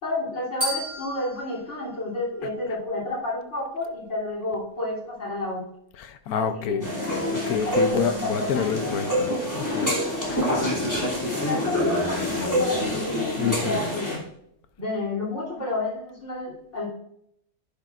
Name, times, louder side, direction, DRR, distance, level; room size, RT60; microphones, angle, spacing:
voice 1, 0.0-5.6 6.3-6.9 7.7-9.1 11.1-14.2 14.8-16.9, left 2 dB, 50° left, -4 dB, 3.5 m, -31 dB
sound 1, 0.6-2.9, equal, 80° right, 3.9 m, -34 dB
voice 2, 6.0-6.9 7.3-9.9 10.3-10.4 13.4-13.9, left 7 dB, 80° left, 10 dB, 1.2 m, -28 dB
sound 2, 6.8-14.2, equal, 10° left, 2.9 m, -26 dB
10.5 x 10.5 x 2.5 m, 0.73 s
omnidirectional pair, 1.5 m